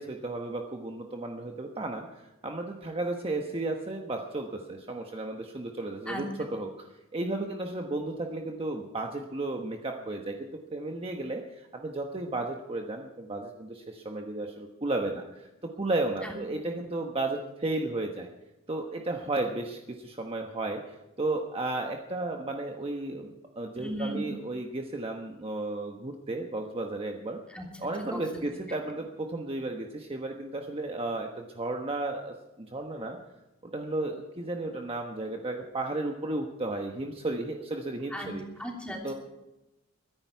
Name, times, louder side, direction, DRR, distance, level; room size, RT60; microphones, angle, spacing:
voice 1, 0.0-6.9 7.1-15.5 15.8-18.3 18.7-27.4 27.8-33.2 33.6-38.4 39.0-39.1, right 2 dB, 25° right, 2 dB, 1.1 m, -34 dB
voice 2, 23.7-24.2 27.5-27.7 28.1-28.2 38.1-38.3 38.6-39.1, equal, 5° left, -1 dB, 3.2 m, -36 dB
23.0 x 10.5 x 4.6 m, 0.98 s
head